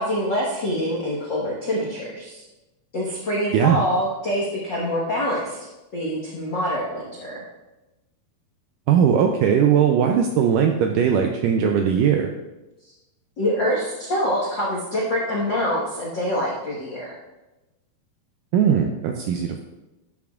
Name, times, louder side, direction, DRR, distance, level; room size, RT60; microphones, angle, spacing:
voice 1, 0.0-2.4 2.9-5.6 5.9-7.4 13.4-17.1, equal, 70° left, -5 dB, 1.0 m, -25 dB
voice 2, 8.9-12.3 18.5-19.6, right 8 dB, 80° right, 3 dB, 1.9 m, -19 dB
12.5 x 7.0 x 2.4 m, 1.0 s
omnidirectional pair, 4.3 m